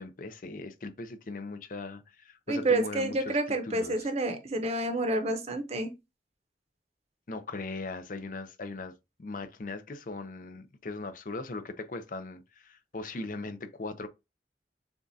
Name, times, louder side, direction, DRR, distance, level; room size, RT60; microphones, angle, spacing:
voice 1, 0.0-3.4 3.6-4.1 7.3-8.9 9.2-14.1, left 3 dB, 50° left, 0.6 m, -39 dB
voice 2, 2.5-5.9, right 2 dB, 35° right, 0.8 m, -29 dB
7.0 x 2.4 x 2.7 m
head